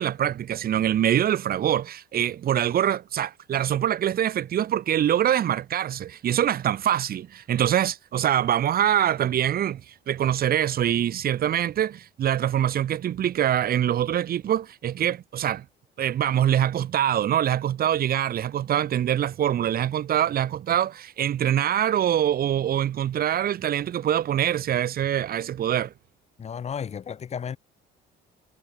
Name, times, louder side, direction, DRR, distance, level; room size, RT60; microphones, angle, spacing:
voice 1, 0.0-15.6 16.0-25.9, right 10 dB, 50° right, 6.2 m, -24 dB
voice 2, 26.4-27.6, left 7 dB, 35° left, 2.5 m, -33 dB
cardioid pair, 160°, 20 cm